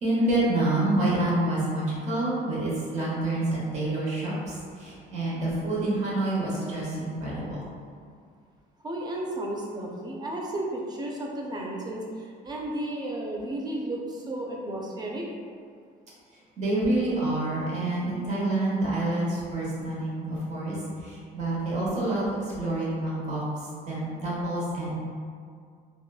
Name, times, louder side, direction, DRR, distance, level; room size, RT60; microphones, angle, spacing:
voice 1, 0.0-7.6 16.6-23.4 23.9-25.0, right 2 dB, 40° right, -7 dB, 1.0 m, -27 dB
voice 2, 8.8-15.3, right 1 dB, 25° right, -2 dB, 0.4 m, -33 dB
2.9 x 2.2 x 2.3 m, 2.1 s
cardioid pair, 110°, 17 cm